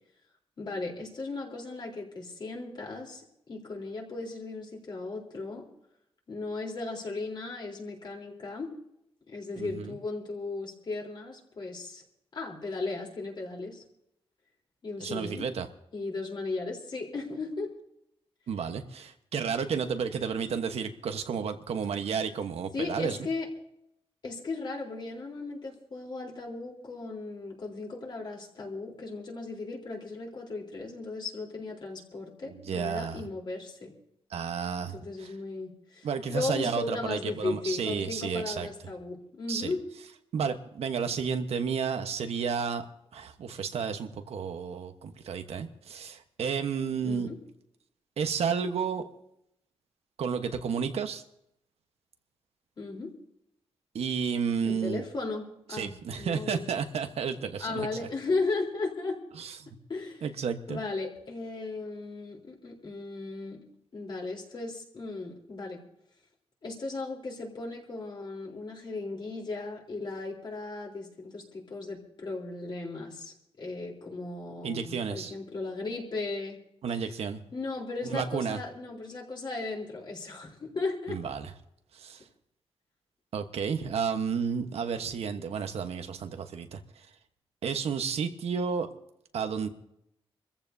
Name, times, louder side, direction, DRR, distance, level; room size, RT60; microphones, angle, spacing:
voice 1, 0.6-5.6 6.3-8.7 9.3-12.0 12.3-13.8 14.8-15.5 15.9-17.7 22.7-23.5 24.2-33.9 34.9-39.8 47.0-47.4 52.8-53.1 54.6-56.7 57.6-59.2 59.9-60.3 60.7-63.6 63.9-65.8 66.6-76.6 77.5-81.2, left 3 dB, 50° left, 0 dB, 3.6 m, -36 dB
voice 2, 9.6-9.9 15.0-15.7 18.5-23.2 32.5-33.2 34.3-35.3 36.0-38.7 39.5-39.7 40.3-42.8 43.1-47.3 48.2-49.0 50.2-51.2 53.9-55.0 55.7-57.9 59.4-59.8 60.2-60.8 74.6-75.4 76.8-77.4 78.0-78.6 81.1-81.5 81.9-82.2 83.3-86.8 87.6-88.9 89.3-89.7, right 6 dB, 90° right, 7 dB, 1.1 m, -32 dB
27.0 x 14.5 x 2.7 m, 0.77 s
wide cardioid pair, 135°, 10 cm